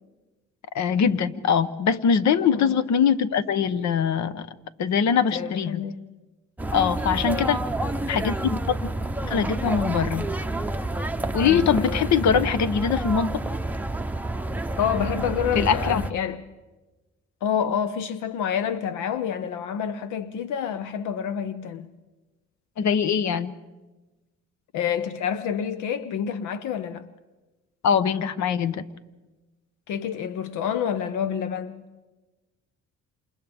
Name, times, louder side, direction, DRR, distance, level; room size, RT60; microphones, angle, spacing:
voice 1, 0.7-4.5 4.8-5.8 6.7-7.6 8.1-8.8 9.2-10.3 11.3-13.4 15.5-16.0 22.8-23.6 27.8-28.9, left 7 dB, 65° left, 1.0 m, -22 dB
voice 2, 5.3-6.0 7.1-7.6 11.4-12.1 14.8-16.4 17.4-21.9 24.7-27.1 29.9-31.9, left 8 dB, 90° left, 0.7 m, -28 dB
sound 1, 6.6-16.1, right 2 dB, 5° right, 0.7 m, -29 dB
28.0 x 28.0 x 3.5 m
cardioid pair, 90°, 30 cm